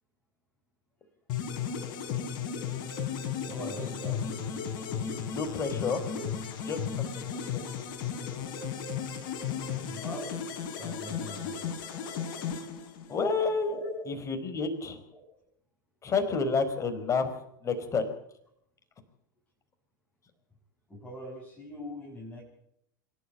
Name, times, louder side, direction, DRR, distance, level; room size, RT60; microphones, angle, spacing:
sound 1, 1.3-13.4, left 7 dB, 50° left, 4.3 m, -35 dB
voice 1, 3.5-4.2 6.2-6.3 9.9-10.3 10.8-11.8 13.6-14.0 15.1-15.2 20.9-22.4, left 1 dB, 10° left, -4 dB, 7.9 m, -41 dB
voice 2, 5.3-6.0 6.7-7.6 13.1-13.7 14.1-15.0 16.0-17.3 17.6-18.1, left 4 dB, 30° left, 7 dB, 4.6 m, -30 dB
25.5 x 12.0 x 8.5 m, 0.72 s
hypercardioid pair, 85°, 11 cm